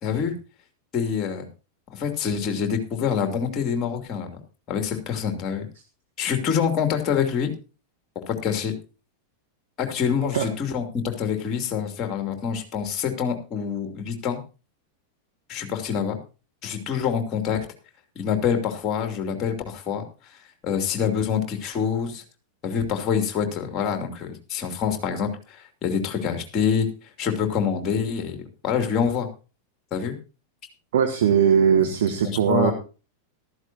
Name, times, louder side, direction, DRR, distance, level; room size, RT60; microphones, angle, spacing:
voice 1, 0.0-0.3 0.9-1.5 1.9-4.4 4.7-5.7 6.2-7.5 8.1-8.7 9.8-14.4 15.5-16.2 16.6-17.7 18.2-20.0 20.6-22.2 22.6-26.9 27.2-28.4 28.6-29.3 29.9-30.2 32.2-32.7, left 7 dB, 30° left, 5 dB, 2.8 m, -26 dB
voice 2, 30.9-32.7, right 8 dB, 60° right, 6 dB, 1.2 m, -20 dB
14.5 x 13.0 x 2.8 m, 0.33 s
figure-of-eight pair, 90°, 0 cm